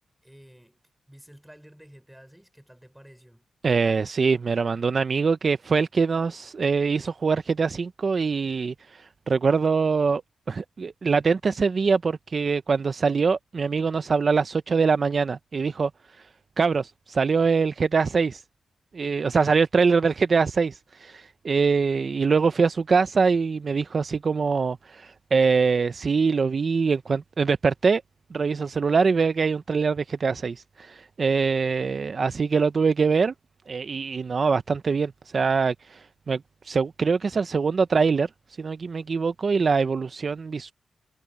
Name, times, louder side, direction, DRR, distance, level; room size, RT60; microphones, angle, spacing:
voice 1, 0.2-0.8 1.1-3.5, equal, 5° right, 5.6 m, -51 dB
voice 2, 3.6-10.2 10.5-15.9 16.2-16.3 16.6-18.4 18.9-28.0 28.3-33.3 33.7-38.3 38.6-40.7, right 5 dB, 45° right, 0.5 m, -23 dB
wide cardioid pair, 130°, 0 cm